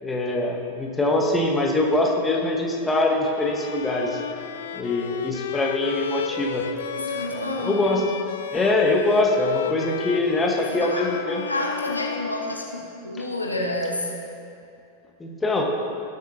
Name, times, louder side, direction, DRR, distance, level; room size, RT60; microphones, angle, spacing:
voice 1, 0.0-4.2 4.7-6.7 7.3-8.1 8.5-11.4 15.2-15.6, left 2 dB, 10° left, 0 dB, 1.4 m, -23 dB
Bowed string instrument, 3.3-13.1, left 7 dB, 60° left, 0.5 m, -33 dB
voice 2, 6.9-7.8 10.7-11.1 11.5-14.2, left 1 dB, 85° left, 0 dB, 1.3 m, -29 dB
18.0 x 7.9 x 2.9 m, 2.6 s
figure-of-eight pair, 90°, 0 cm